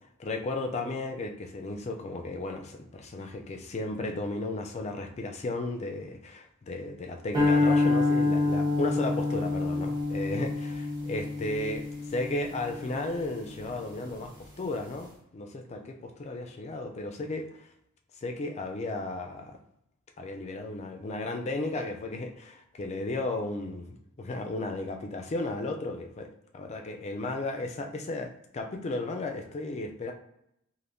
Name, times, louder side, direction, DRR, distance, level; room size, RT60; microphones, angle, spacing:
voice 1, 0.2-10.5 11.1-11.8 12.1-17.7 18.2-19.6 20.2-26.3 26.5-30.1, left 2 dB, 30° left, 4 dB, 0.4 m, -34 dB
sound 1, 7.3-13.7, left 2 dB, 20° right, 1.2 m, -27 dB
3.4 x 2.5 x 2.6 m, 0.78 s
head